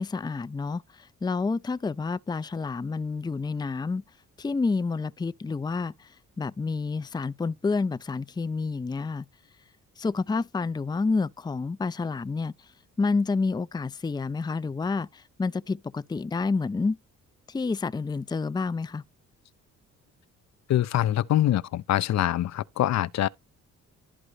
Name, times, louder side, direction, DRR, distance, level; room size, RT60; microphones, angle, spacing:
voice 1, 0.0-4.0 4.4-9.3 10.0-12.7 13.0-17.0 17.5-19.0, left 4 dB, 15° left, 0.5 m, -29 dB
voice 2, 20.7-23.3, left 13 dB, 60° left, 0.7 m, -24 dB
12.5 x 4.9 x 3.9 m
cardioid pair, 90°, 30 cm